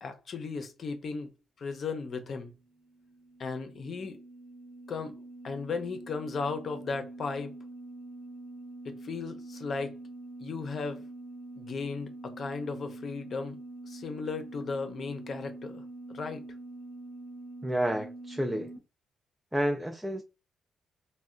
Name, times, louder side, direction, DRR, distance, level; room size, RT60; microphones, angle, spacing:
voice 1, 0.0-2.5 3.4-4.2 4.9-5.2 5.4-7.5 8.8-9.9 10.4-11.0 11.6-13.6 13.9-15.8 16.1-16.4, left 4 dB, 50° left, 0.6 m, -36 dB
sound 1, 2.6-18.8, right 2 dB, 80° right, 1.0 m, -45 dB
voice 2, 17.6-18.7 19.5-20.2, equal, 5° right, 0.4 m, -30 dB
3.3 x 2.2 x 2.5 m
cardioid pair, 90°, 0 cm